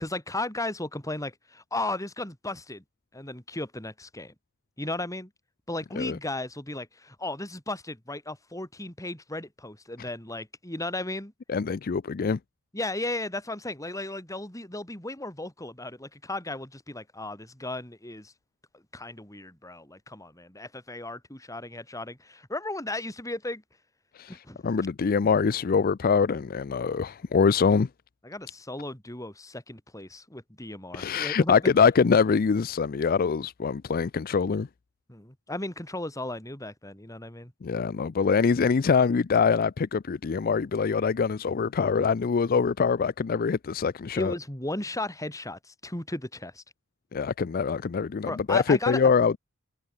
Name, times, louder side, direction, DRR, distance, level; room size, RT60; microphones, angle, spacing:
voice 1, 0.0-2.8 3.1-4.3 4.8-5.3 5.7-11.3 12.7-18.3 18.7-23.6 24.3-24.9 28.2-31.6 35.1-37.5 44.2-46.6 48.3-49.0, left 2 dB, 15° left, 4.3 m, -35 dB
voice 2, 11.5-12.4 24.1-27.9 30.9-34.7 37.6-44.3 47.1-49.4, left 5 dB, 45° left, 0.4 m, -24 dB
head